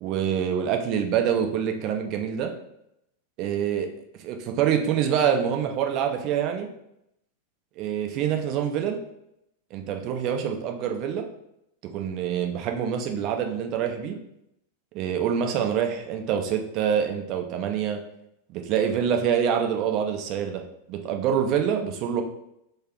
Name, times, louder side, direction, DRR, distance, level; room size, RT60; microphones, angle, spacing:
voice 1, 0.0-2.5 3.4-3.9 4.2-6.7 7.8-9.0 9.7-11.2 11.8-14.2 14.9-18.0 18.5-20.6 20.9-22.2, right 8 dB, 40° right, 4 dB, 0.6 m, -26 dB
3.9 x 2.7 x 4.5 m, 0.80 s
figure-of-eight pair, 90°, 0 cm